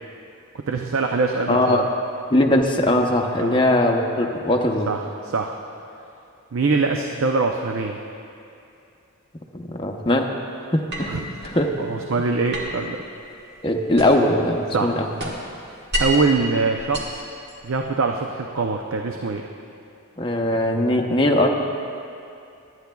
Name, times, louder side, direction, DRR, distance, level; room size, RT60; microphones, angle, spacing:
voice 1, 0.7-1.9 3.4-3.6 4.9-5.0 5.2-5.6 6.5-8.0 11.1-11.3 11.8-13.0 14.7-14.9 16.0-17.2 17.6-19.4, right 4 dB, 70° right, 3 dB, 0.5 m, -23 dB
voice 2, 1.5-1.8 2.3-4.9 9.5-10.3 10.7-11.2 11.4-11.7 13.6-15.1 20.2-21.5, left 1 dB, 25° left, 2 dB, 0.7 m, -20 dB
sound 1, 10.9-11.6 12.5-14.4 14.7-16.3 16.8-17.9, equal, 50° right, 1.5 m, -30 dB
22.0 x 9.6 x 2.3 m, 2.6 s
head